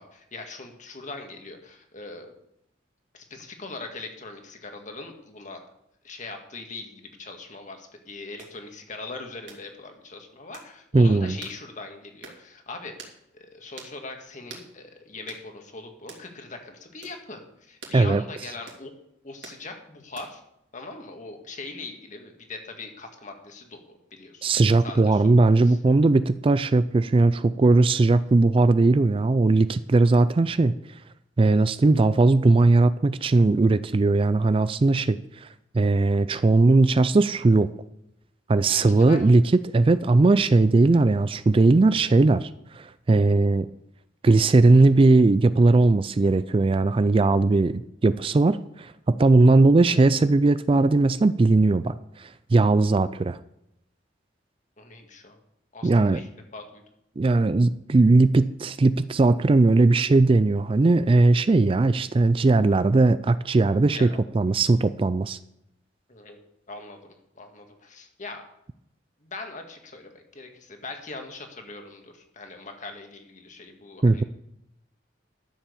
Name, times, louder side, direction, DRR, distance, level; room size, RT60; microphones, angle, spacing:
voice 1, 0.0-2.3 3.1-5.6 6.0-18.9 19.2-20.4 20.7-23.8 24.1-24.5 24.8-25.2 25.6-25.8 38.7-39.3 54.8-55.4 55.7-56.8 63.9-64.2 66.1-66.4 66.7-68.5 69.2-74.2, left 3 dB, 40° left, 4 dB, 1.9 m, -41 dB
sound 1, 8.4-8.6 9.5-9.7 10.5-10.7 11.4-11.6 12.2-12.4 13.0-13.2 13.8-14.0 14.5-14.7 15.3-15.5 16.1-16.3 17.0-17.2 17.8-18.0 18.7-18.9 19.4-19.6 20.2-20.5, right 4 dB, 65° right, 2.7 m, -44 dB
voice 2, 10.9-11.4 17.9-18.2 24.4-30.8 31.4-35.5 35.7-37.7 38.5-43.7 44.2-53.4 55.8-56.2 57.2-65.4 74.0-74.2, right 3 dB, 30° right, 14 dB, 0.4 m, -19 dB
12.0 x 7.4 x 7.0 m, 0.80 s
head